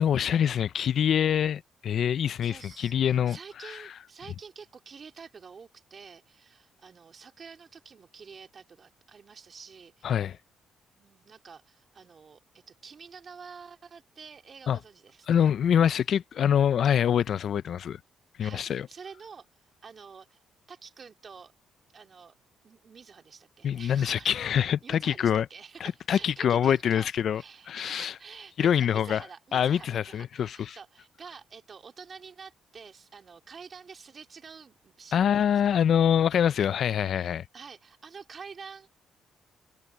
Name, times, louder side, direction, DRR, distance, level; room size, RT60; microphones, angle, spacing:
voice 1, 0.0-3.4 3.6-3.8 10.0-10.4 14.7-14.8 15.3-18.0 18.4-18.9 23.6-25.5 25.8-27.4 27.7-28.1 28.6-29.2 29.5-30.8 35.1-37.4, left 9 dB, 60° left, 0.5 m, -25 dB
voice 2, 2.4-10.3 10.9-15.5 18.4-20.4 20.7-21.5 21.9-22.3 22.6-24.4 24.8-27.1 27.3-35.7 37.5-38.9, right 5 dB, 45° right, 3.0 m, -48 dB
cardioid pair, 90°, 0 cm